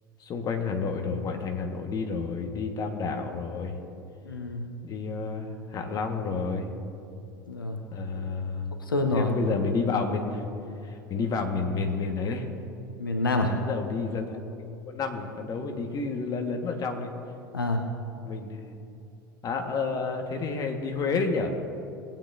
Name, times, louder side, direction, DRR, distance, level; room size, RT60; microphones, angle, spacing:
voice 1, 0.2-3.8 4.8-6.7 7.9-8.7 9.1-10.5 10.8-12.5 13.4-14.5 14.8-17.1 18.2-18.6 19.4-21.5, left 4 dB, 35° left, 4 dB, 1.4 m, -30 dB
voice 2, 4.2-4.6 7.5-7.8 8.9-9.3 13.0-13.5 17.5-17.8, left 2 dB, 90° left, 4 dB, 0.9 m, -27 dB
20.5 x 8.9 x 2.6 m, 2.6 s
figure-of-eight pair, 80°, 11 cm